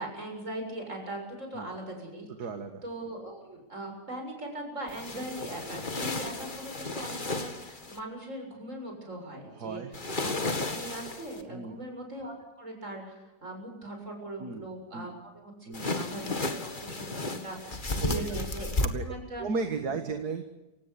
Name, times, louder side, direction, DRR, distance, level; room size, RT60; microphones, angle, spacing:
voice 1, 0.0-2.3 2.8-9.8 10.2-18.7 19.0-19.4, right 1 dB, 45° right, 3 dB, 7.7 m, -40 dB
voice 2, 2.4-2.8 9.6-9.9 11.5-11.8 14.4-14.7 14.9-15.1 15.7-15.9 18.0-18.2 18.8-20.4, right 4 dB, 70° right, 7 dB, 2.3 m, -35 dB
sound 1, 4.9-8.0 9.9-11.4 15.7-18.9, left 2 dB, 30° left, 2.0 m, -33 dB
28.5 x 17.0 x 8.5 m, 1.0 s
omnidirectional pair, 1.8 m